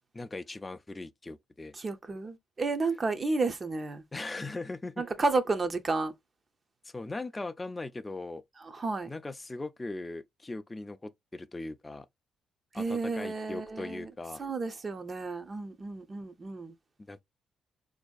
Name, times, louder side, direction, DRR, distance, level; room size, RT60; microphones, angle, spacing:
voice 1, 0.1-1.8 4.1-5.0 6.8-8.4 9.1-12.1 12.7-14.4 17.1-17.2, left 2 dB, 20° left, 0.3 m, -39 dB
voice 2, 1.8-4.0 5.0-6.1 8.6-9.1 12.7-14.1 14.4-16.7, right 3 dB, 35° right, 0.5 m, -32 dB
4.3 x 2.6 x 2.2 m
cardioid pair, 90°, 0 cm